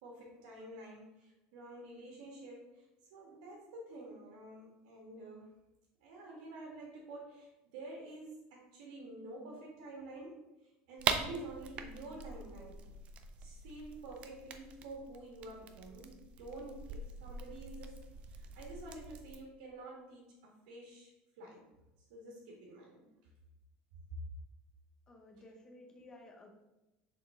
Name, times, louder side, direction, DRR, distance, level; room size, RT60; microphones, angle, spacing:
voice 1, 0.0-2.8 3.1-5.5 6.0-10.5 10.9-12.8 13.4-18.0 18.2-21.7 22.1-23.1, right 2 dB, 75° right, -3 dB, 1.6 m, -49 dB
sound 1, 11.0-19.4, right 6 dB, 30° right, 0.4 m, -42 dB
voice 2, 25.1-26.5, left 1 dB, 15° left, 2 dB, 0.8 m, -55 dB
6.5 x 4.1 x 3.6 m, 0.99 s
cardioid pair, 180°, 4 cm